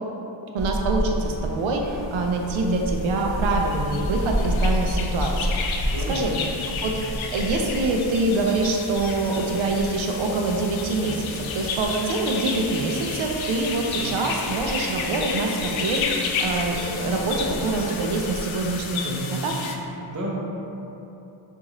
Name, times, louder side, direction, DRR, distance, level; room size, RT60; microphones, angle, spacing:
voice 1, 0.5-6.3 6.7-7.0 7.3-19.6, right 2 dB, 80° right, 1 dB, 0.7 m, -25 dB
sound 1, 0.6-18.8, equal, ahead, 1.3 m, -31 dB
sound 2, 3.0-19.7, left 5 dB, 80° left, 0.6 m, -32 dB
voice 2, 5.8-6.5 6.9-7.1 14.0-14.2 19.1-19.6 20.1-20.4, right 2 dB, 40° right, -4 dB, 1.0 m, -33 dB
6.2 x 2.7 x 3.0 m, 3.0 s
cardioid pair, 80°, 47 cm